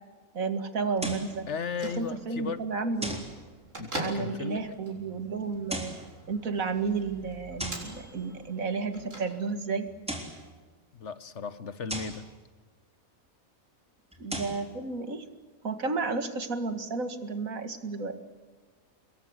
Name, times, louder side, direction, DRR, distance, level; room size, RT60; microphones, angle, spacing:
voice 1, 0.3-1.5 2.0-3.2 4.0-5.9 6.3-9.9 14.2-15.2 15.6-18.2, right 4 dB, 80° right, 9 dB, 2.4 m, -32 dB
sound 1, 1.0-1.4 3.0-3.4 5.5-6.1 7.6-7.9 9.9-10.4 11.9-12.2 14.1-14.6, equal, 5° right, 3.6 m, -36 dB
voice 2, 1.5-2.6 3.8-4.6 10.9-12.2, left 5 dB, 60° left, 14 dB, 1.4 m, -36 dB
Bell / Microwave oven, 1.5-9.8, right 1 dB, 65° right, 5.8 m, -44 dB
26.0 x 21.5 x 8.0 m, 1.4 s
omnidirectional pair, 1.4 m